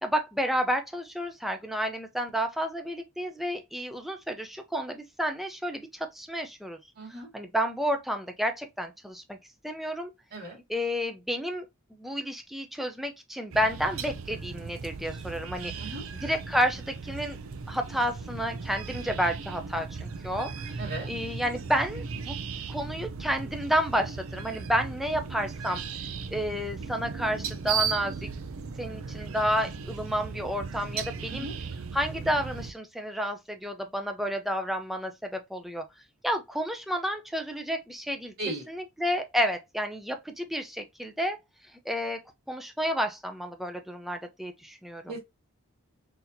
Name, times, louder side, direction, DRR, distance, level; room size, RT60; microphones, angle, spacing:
voice 1, 0.0-6.8 7.3-9.4 9.6-10.1 10.7-11.7 11.9-17.4 17.7-22.3 22.7-25.8 26.3-28.3 28.8-31.5 31.9-35.8 36.2-38.3 38.7-41.4 41.9-42.2 42.5-45.2, equal, ahead, 0.5 m, -30 dB
voice 2, 7.0-7.3 10.3-10.6 15.7-16.0 20.8-21.1 31.3-31.5 38.4-38.6 45.1-45.2, right 2 dB, 50° right, 2.2 m, -36 dB
sound 1, 13.5-32.7, right 5 dB, 75° right, 0.5 m, -37 dB
4.0 x 2.8 x 2.7 m
head